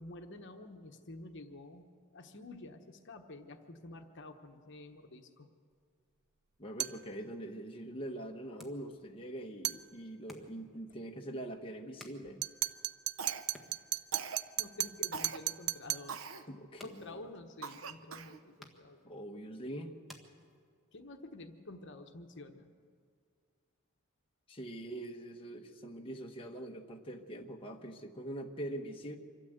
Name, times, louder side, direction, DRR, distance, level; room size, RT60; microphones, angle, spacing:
voice 1, 0.0-1.8 2.1-5.5 12.2-12.3 13.7-13.8 14.6-16.2 16.8-19.0 20.9-22.7, left 2 dB, 55° left, 6 dB, 1.2 m, -49 dB
sound 1, 6.5-21.0, left 1 dB, ahead, 1.5 m, -60 dB
voice 2, 6.6-12.5 16.5-17.2 19.0-20.0 24.5-29.2, right 1 dB, 25° left, 1 dB, 1.2 m, -43 dB
sound 2, 6.8-7.1 9.6-9.9 12.4-16.1, right 14 dB, 55° right, 0.5 m, -36 dB
Cough, 13.2-13.7 14.1-14.5 15.1-15.4 16.1-16.4 17.0-17.1 17.6-18.4, right 5 dB, 70° right, 0.8 m, -42 dB
25.5 x 12.5 x 8.0 m, 2.1 s
head